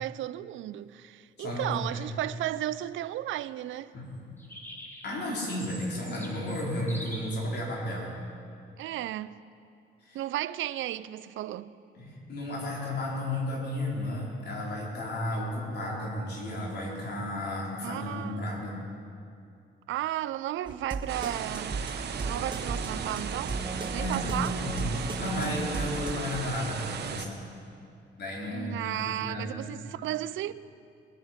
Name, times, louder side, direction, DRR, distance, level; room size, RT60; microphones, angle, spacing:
voice 1, 0.0-3.9 8.8-9.3 10.1-11.8 17.8-18.4 19.9-21.8 22.2-23.6 23.9-24.6 28.5-30.5, right 13 dB, 75° right, 0.5 m, -34 dB
voice 2, 1.4-2.1 3.9-4.1 5.0-8.1 10.0-10.2 12.0-18.7 22.1-22.2 24.0-27.4 28.2-29.5, left 1 dB, 55° left, 4.5 m, -33 dB
sound 1, 4.4-7.2, equal, 10° left, 2.9 m, -44 dB
sound 2, 20.7-26.1, right 3 dB, 25° right, 1.4 m, -36 dB
sound 3, 21.1-27.3, right 7 dB, 55° right, 1.0 m, -36 dB
21.0 x 9.5 x 5.9 m
cardioid pair, 90°, 20 cm